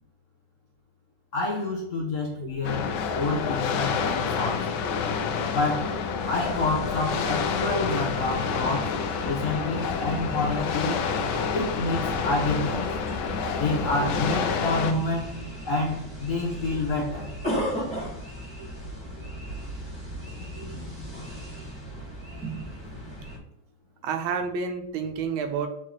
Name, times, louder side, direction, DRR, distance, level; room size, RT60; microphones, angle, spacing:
voice 1, 1.3-2.9 3.1-4.7 5.5-6.0 6.2-11.0 11.5-12.9 13.5-15.3 15.6-17.3, left 2 dB, 60° left, 0.8 m, -28 dB
sound 1, 2.6-14.9, left 6 dB, 75° left, 1.4 m, -28 dB
sound 2, 6.2-23.4, right 1 dB, 15° right, 1.5 m, -36 dB
voice 2, 24.0-25.7, right 6 dB, 80° right, 1.5 m, -30 dB
4.7 x 3.7 x 3.0 m
omnidirectional pair, 2.3 m